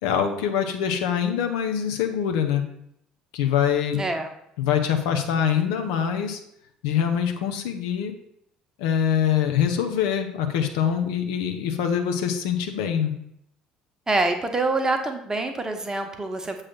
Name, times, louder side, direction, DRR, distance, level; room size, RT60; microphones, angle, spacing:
voice 1, 0.0-2.6 3.3-4.0 4.6-6.4 6.8-8.1 8.8-13.1, left 8 dB, 65° left, 5 dB, 0.7 m, -24 dB
voice 2, 3.9-4.3 14.1-16.6, right 2 dB, 15° right, 5 dB, 1.0 m, -25 dB
7.3 x 3.3 x 5.8 m, 0.73 s
figure-of-eight pair, 55°, 4 cm